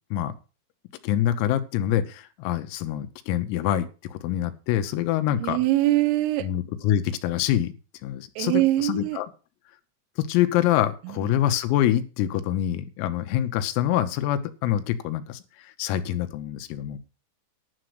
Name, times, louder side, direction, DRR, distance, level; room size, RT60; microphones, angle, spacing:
voice 1, 1.0-5.6 6.4-7.7 8.0-9.3 10.2-15.4 15.8-17.0, left 12 dB, 90° left, 3.8 m, -25 dB
voice 2, 5.3-6.5 8.4-9.2 11.0-11.3, right 16 dB, 80° right, 3.4 m, -23 dB
11.0 x 6.4 x 7.9 m
omnidirectional pair, 5.9 m